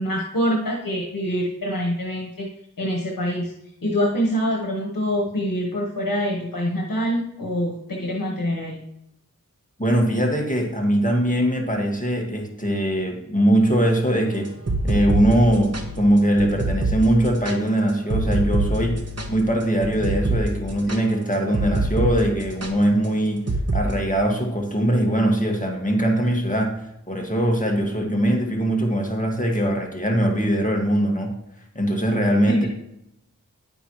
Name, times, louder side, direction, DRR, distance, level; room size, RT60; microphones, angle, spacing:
voice 1, 0.0-2.5 2.8-3.5 3.8-8.8 32.5-32.7, equal, 80° left, -2 dB, 1.3 m, -25 dB
voice 2, 9.8-14.5 14.8-18.9 19.3-23.4 23.7-31.3 31.8-32.7, right 1 dB, 25° left, 0 dB, 1.9 m, -21 dB
sound 1, 14.5-22.1 22.4-22.7 23.5-23.9, right 2 dB, 45° right, 1.2 m, -25 dB
10.5 x 9.0 x 3.1 m, 0.78 s
wide cardioid pair, 45°, 34 cm